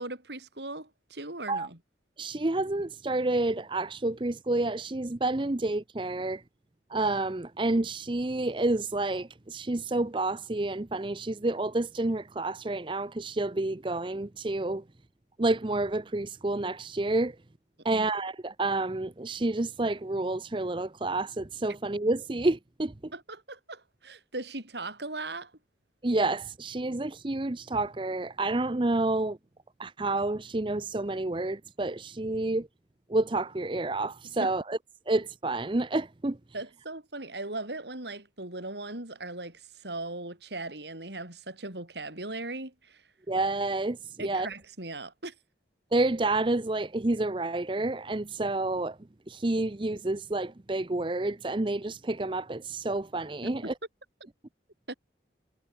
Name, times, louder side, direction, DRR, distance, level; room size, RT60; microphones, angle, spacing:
voice 1, 0.0-1.8 17.9-18.1 23.1-25.5 34.4-34.6 36.5-43.0 44.2-45.3 54.9-55.0, right 2 dB, 75° right, 5.6 m, -38 dB
voice 2, 2.2-6.4 6.9-14.8 15.4-17.3 17.8-23.1 26.0-29.4 29.8-32.7 33.1-34.8 35.1-36.4 43.3-44.5 45.9-49.0 49.3-53.7, right 2 dB, 30° right, 0.7 m, -29 dB
head